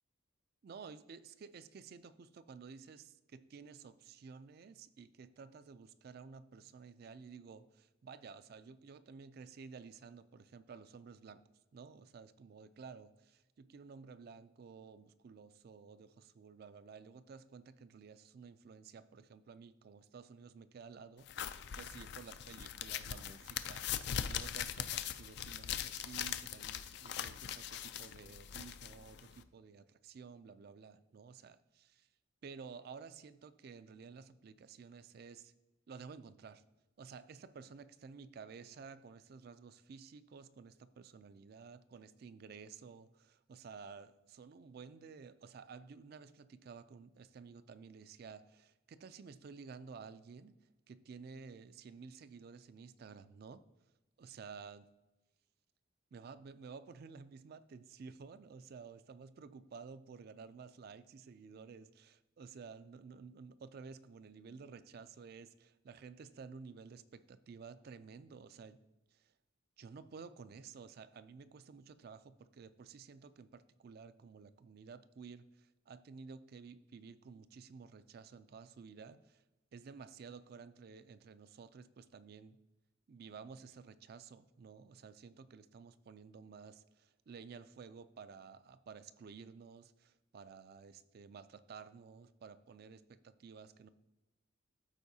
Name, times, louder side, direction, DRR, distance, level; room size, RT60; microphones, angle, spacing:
voice 1, 0.6-11.4 11.7-32.1 32.4-35.5 35.9-36.6 37.0-50.5 50.9-53.6 54.2-54.9 56.1-68.8 69.1-69.3 69.8-79.4 79.7-82.6 83.1-93.9, right 5 dB, 50° right, 13 dB, 0.3 m, -53 dB
sound 1, 21.3-29.4, left 9 dB, 55° left, 0.3 m, -41 dB
13.0 x 4.4 x 2.7 m, 1.0 s
head